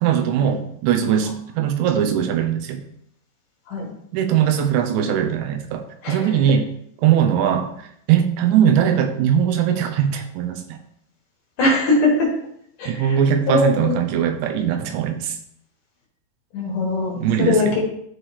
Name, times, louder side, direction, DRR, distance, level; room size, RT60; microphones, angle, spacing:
voice 1, 0.0-2.8 4.1-6.7 7.0-7.7 8.1-10.8 12.9-15.4 17.2-17.8, right 9 dB, 90° right, 6 dB, 3.2 m, -20 dB
voice 2, 11.6-12.3 12.8-13.2 13.5-14.0 16.5-17.8, left 2 dB, 55° left, -3 dB, 2.8 m, -21 dB
12.5 x 4.7 x 3.3 m, 0.70 s
omnidirectional pair, 5.1 m